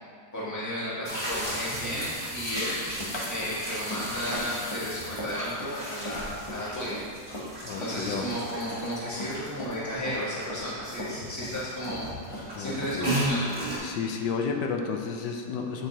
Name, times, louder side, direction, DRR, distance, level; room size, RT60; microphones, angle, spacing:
voice 1, 0.3-2.8 3.3-7.0 7.8-12.1 12.6-13.5, equal, 10° left, -8 dB, 1.2 m, -33 dB
sound 1, 1.0-13.8, right 1 dB, 30° right, 1.6 m, -35 dB
Run, 2.6-8.0 8.2-9.8 10.1-11.6 11.9-13.3, left 1 dB, 45° left, 0.3 m, -38 dB
voice 2, 7.6-8.3 12.6-13.2 13.8-15.9, left 5 dB, 75° left, 2 dB, 1.2 m, -32 dB
7.7 x 4.7 x 2.9 m, 2.2 s
omnidirectional pair, 1.9 m